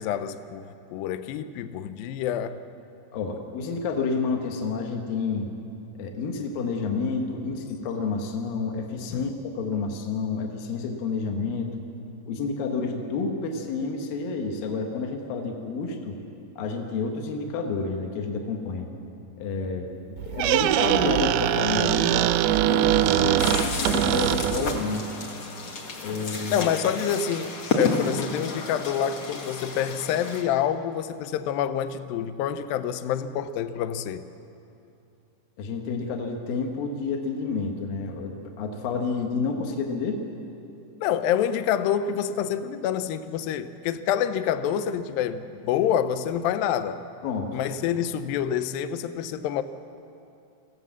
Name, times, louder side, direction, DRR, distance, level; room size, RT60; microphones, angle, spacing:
voice 1, 0.0-2.6 9.1-9.3 23.2-23.3 26.5-34.2 41.0-47.0 47.5-49.6, left 9 dB, 85° left, 11 dB, 2.1 m, -27 dB
voice 2, 3.1-5.5 6.0-11.8 12.3-16.2 16.6-18.9 19.4-19.9 20.3-22.3 22.6-25.0 26.0-26.5 35.6-40.2 47.2-47.5, left 4 dB, 65° left, 3 dB, 2.7 m, -29 dB
Squeak, 20.2-24.8, right 12 dB, 85° right, 2.2 m, -22 dB
sound 1, 23.4-30.4, left 3 dB, 50° left, 2.1 m, -31 dB
23.0 x 16.0 x 7.3 m, 2.7 s
omnidirectional pair, 5.1 m